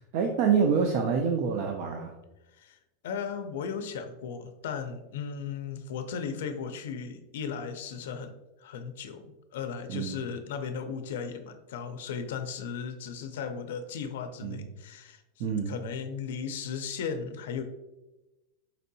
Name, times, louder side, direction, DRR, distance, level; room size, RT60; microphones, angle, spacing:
voice 1, 0.1-2.1 9.9-10.2 14.4-14.6 15.4-15.8, right 6 dB, 50° right, 3 dB, 0.4 m, -26 dB
voice 2, 3.0-8.3 8.6-17.6, left 6 dB, 80° left, 7 dB, 0.4 m, -36 dB
4.2 x 2.7 x 2.6 m, 1.0 s
supercardioid pair, 165°, 0 cm